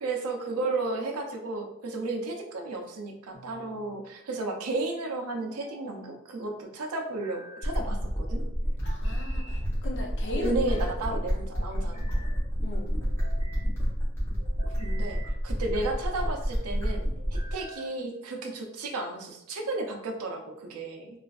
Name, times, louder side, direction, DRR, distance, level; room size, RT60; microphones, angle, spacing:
voice 1, 0.0-8.4 10.3-12.2 14.8-15.2 15.4-17.1 17.3-21.1, right 2 dB, 80° right, 2 dB, 0.5 m, -33 dB
sound 1, 3.3-4.0 5.4-6.2 7.0-7.8 8.8-9.6 10.2-10.9 11.5-12.4 13.0-13.7 14.4-15.3 15.9-16.4 17.2-18.0, right 1 dB, 30° left, 1.4 m, -48 dB
sound 2, 7.6-17.6, equal, 10° left, 0.9 m, -29 dB
voice 2, 8.8-10.5 12.6-12.9, left 3 dB, 50° left, 1 dB, 0.5 m, -38 dB
3.2 x 2.4 x 2.3 m, 0.81 s
head